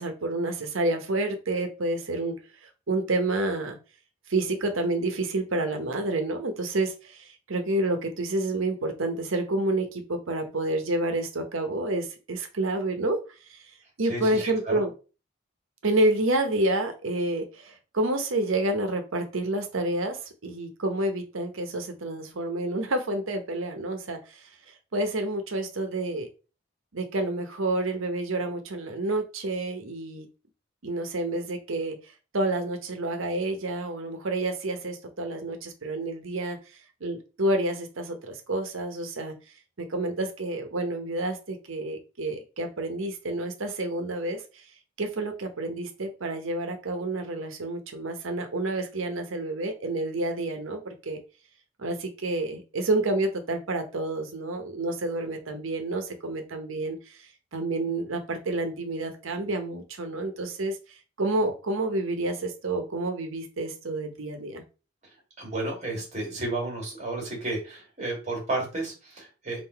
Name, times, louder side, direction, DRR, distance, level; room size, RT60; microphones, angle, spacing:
voice 1, 0.0-2.4 2.9-3.8 4.3-13.2 13.5-13.6 14.0-14.9 15.8-24.4 24.9-26.3 26.9-30.3 30.8-32.0 32.3-36.6 37.0-39.3 39.8-44.4 45.0-51.2 51.8-57.0 57.5-60.8 61.2-64.6, right 2 dB, 80° right, 6 dB, 0.8 m, -29 dB
voice 2, 14.0-14.8 65.4-69.6, right 2 dB, 35° right, 0 dB, 1.7 m, -32 dB
3.7 x 2.6 x 4.4 m, 0.33 s
head